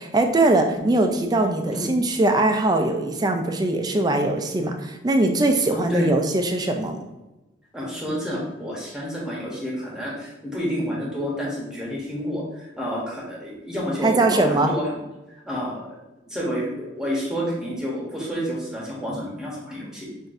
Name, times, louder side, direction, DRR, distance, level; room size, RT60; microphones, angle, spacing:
voice 1, 0.0-7.0 14.0-14.7, right 2 dB, 20° right, 4 dB, 0.4 m, -21 dB
voice 2, 5.7-6.1 7.7-15.0 15.3-16.0 16.3-20.1, equal, 5° right, -4 dB, 1.0 m, -29 dB
5.8 x 2.6 x 2.6 m, 1.0 s
head